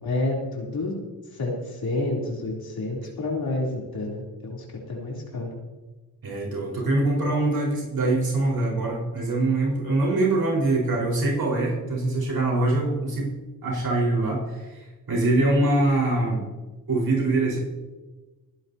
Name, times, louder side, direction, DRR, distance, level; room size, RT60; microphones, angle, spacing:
voice 1, 0.0-1.0 1.3-5.6, left 2 dB, 70° left, -3 dB, 3.4 m, -29 dB
voice 2, 6.2-13.3 13.6-16.4 16.9-17.6, right 2 dB, 65° right, -3 dB, 4.6 m, -23 dB
25.0 x 10.5 x 2.8 m, 1.2 s
cardioid pair, 55°, 38 cm